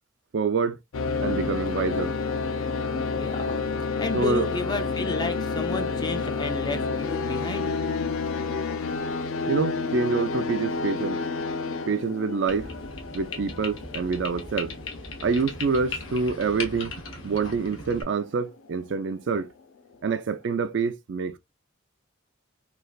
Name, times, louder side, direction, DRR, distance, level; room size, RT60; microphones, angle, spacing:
voice 1, 0.3-0.8 1.2-2.1 4.1-4.5 9.5-11.2 11.9-12.7 13.1-14.7 15.2-16.9 17.2-19.5 20.0-21.4, right 4 dB, 60° right, 0.3 m, -26 dB
sound 1, 0.9-19.2, left 4 dB, 90° left, 0.5 m, -30 dB
voice 2, 3.2-3.6 4.0-7.7, left 3 dB, 20° left, 0.4 m, -31 dB
sound 2, 12.5-18.0, left 3 dB, 70° left, 0.9 m, -38 dB
3.1 x 2.4 x 2.3 m
head